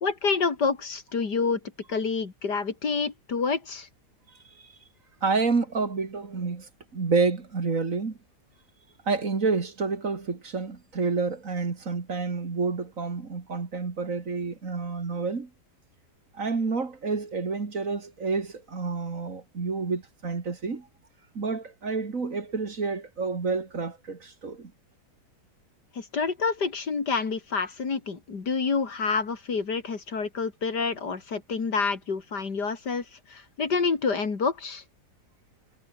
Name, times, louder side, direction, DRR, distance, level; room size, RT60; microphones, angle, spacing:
voice 1, 0.0-1.6 1.9-3.9 25.9-34.8, left 5 dB, 75° left, 3.3 m, -28 dB
voice 2, 5.2-8.2 9.1-15.5 16.3-20.9 21.3-24.7, right 4 dB, 50° right, 2.7 m, -29 dB
omnidirectional pair, 1.8 m